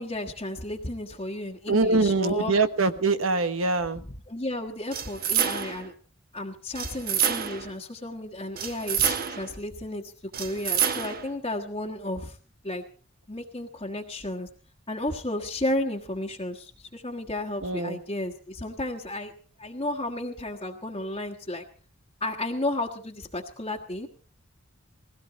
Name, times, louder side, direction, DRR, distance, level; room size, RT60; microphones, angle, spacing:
voice 1, 0.0-2.5 4.3-5.9 6.3-12.4 12.6-12.8 13.3-14.5 14.9-19.3 19.6-21.6 22.2-24.1, left 1 dB, 30° left, 0 dB, 1.4 m, -33 dB
voice 2, 1.7-4.0 17.6-18.0, right 3 dB, 90° right, 10 dB, 1.3 m, -24 dB
sound 1, 4.9-5.9 6.7-7.7 8.6-9.5 10.3-11.3, right 8 dB, 45° right, 1.0 m, -28 dB
20.0 x 16.5 x 4.1 m, 0.42 s
head